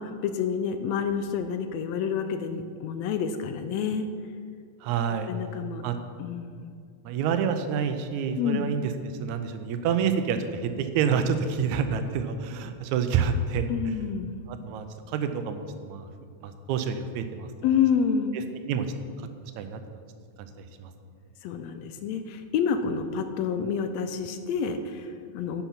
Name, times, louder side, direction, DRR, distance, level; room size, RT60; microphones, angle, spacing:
voice 1, 0.0-4.1 5.3-5.9 6.2-6.7 8.4-8.7 13.7-14.4 17.6-18.4 21.4-25.6, left 7 dB, 80° left, 8 dB, 1.7 m, -28 dB
voice 2, 4.8-5.3 5.8-6.0 7.1-8.9 9.2-13.9 14.5-16.1 16.4-17.5 18.7-19.3 19.6-19.8 20.4-20.9, right 6 dB, 85° right, 8 dB, 2.1 m, -28 dB
10.0 x 6.9 x 5.8 m, 2.2 s
omnidirectional pair, 3.3 m